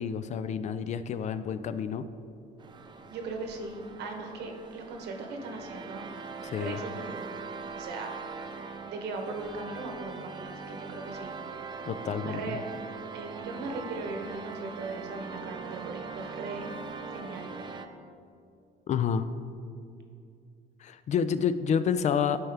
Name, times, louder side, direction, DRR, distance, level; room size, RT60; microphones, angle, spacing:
voice 1, 0.0-2.0 6.4-6.8 11.9-12.4 18.9-19.3 20.8-22.4, left 7 dB, 45° left, 12 dB, 0.4 m, -29 dB
sound 1, 2.6-17.9, right 5 dB, 25° right, 0.5 m, -41 dB
voice 2, 3.1-6.1 6.5-7.2 7.7-8.1 8.7-11.4 12.2-12.6 13.1-16.6 17.1-17.5, right 3 dB, 80° right, 3 dB, 1.1 m, -38 dB
10.5 x 4.4 x 3.4 m, 2.5 s
cardioid pair, 110°, 17 cm